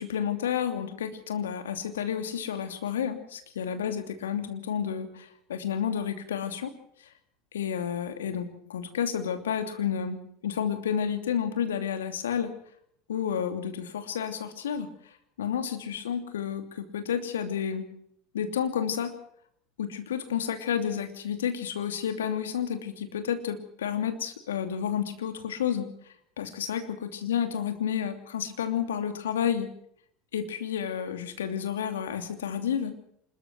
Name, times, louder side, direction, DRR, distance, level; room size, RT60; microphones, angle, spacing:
voice 1, 0.0-6.7 7.5-12.5 13.1-17.9 18.3-19.1 19.8-25.9 26.4-29.7 30.3-32.9, left 8 dB, 75° left, 7 dB, 2.9 m, -31 dB
26.0 x 21.5 x 4.6 m, 0.67 s
figure-of-eight pair, 75°, 0 cm